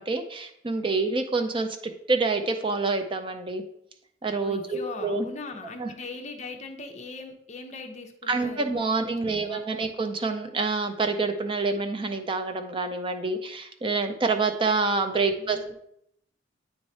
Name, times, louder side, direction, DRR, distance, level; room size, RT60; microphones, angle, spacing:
voice 1, 0.0-1.7 2.1-3.6 4.2-5.2 5.8-5.9 8.3-15.6, right 3 dB, 25° right, 7 dB, 0.4 m, -27 dB
voice 2, 4.4-8.8 9.3-9.6 15.4-15.7, left 3 dB, 35° left, 4 dB, 0.7 m, -40 dB
8.7 x 3.1 x 4.1 m, 0.72 s
head